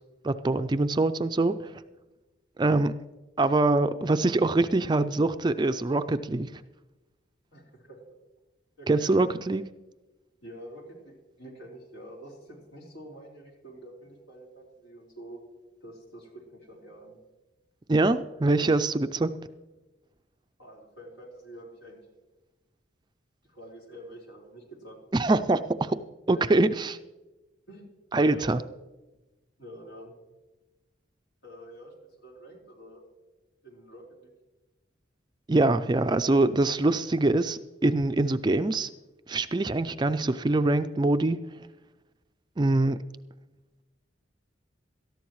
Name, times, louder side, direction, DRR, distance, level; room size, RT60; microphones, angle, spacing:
voice 1, 0.2-1.7 2.6-2.9 3.4-6.5 8.9-9.6 17.9-19.3 25.1-25.6 26.3-26.9 28.1-28.6 35.5-38.9 39.3-41.4 42.6-43.0, right 2 dB, 20° right, 11 dB, 0.4 m, -24 dB
voice 2, 7.5-8.0 8.8-9.5 10.4-15.4 15.8-17.2 19.0-19.2 20.6-22.0 23.5-25.0 25.3-25.5 26.3-26.6 27.7-27.8 28.2-28.6 29.6-30.1 31.4-31.9 32.2-33.0 33.6-34.3, right 1 dB, 80° left, -2 dB, 4.3 m, -47 dB
18.5 x 13.5 x 3.1 m, 1.1 s
head